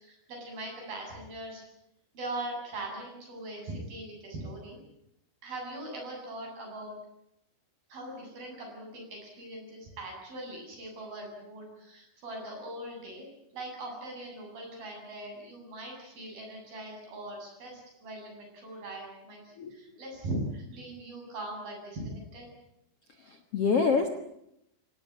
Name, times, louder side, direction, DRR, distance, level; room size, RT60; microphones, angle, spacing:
voice 1, 0.0-1.6 2.1-4.8 5.4-7.0 7.9-13.3 13.5-22.5, right 1 dB, 55° right, 1 dB, 9.9 m, -40 dB
voice 2, 23.2-24.1, left 5 dB, 65° left, 6 dB, 1.5 m, -26 dB
25.5 x 18.5 x 9.8 m, 0.81 s
omnidirectional pair, 5.1 m